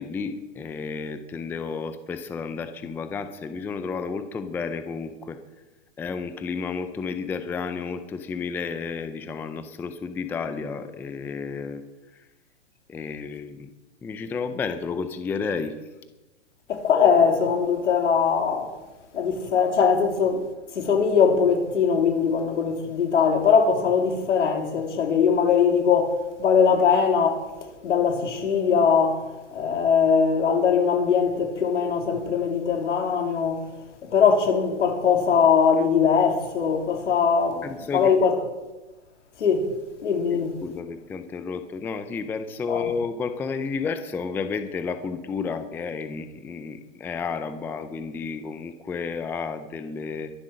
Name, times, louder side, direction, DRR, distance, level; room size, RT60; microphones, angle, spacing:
voice 1, 0.0-5.4 6.0-11.8 12.9-13.7 14.0-15.7 37.6-38.1 40.6-50.3, left 5 dB, 5° left, 0.5 m, -31 dB
voice 2, 16.7-18.7 19.1-20.4 20.7-27.5 27.8-29.2 29.5-33.7 34.0-38.4 39.4-39.7 40.0-40.6 42.7-42.9, left 6 dB, 85° left, 3.3 m, -21 dB
22.5 x 7.6 x 6.3 m
hypercardioid pair, 145°, 35 cm